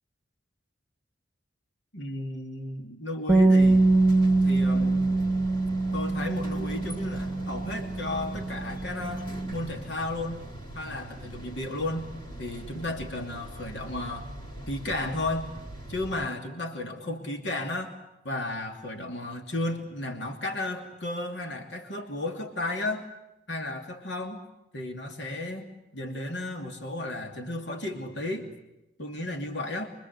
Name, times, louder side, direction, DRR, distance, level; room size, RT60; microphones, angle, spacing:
voice 1, 1.9-3.8 4.4-5.1 5.9-10.4 10.7-12.1 12.4-14.4 14.7-15.5 15.9-17.9 18.2-23.1 23.5-24.4 24.7-25.7 25.9-28.5 29.0-29.9, left 2 dB, 70° left, 3 dB, 2.7 m, -33 dB
Bass guitar, 3.3-9.5, right 2 dB, 10° right, 1.5 m, -24 dB
sound 1, 3.6-16.3, right 1 dB, 25° left, 3.2 m, -41 dB
25.0 x 24.0 x 8.2 m, 0.89 s
head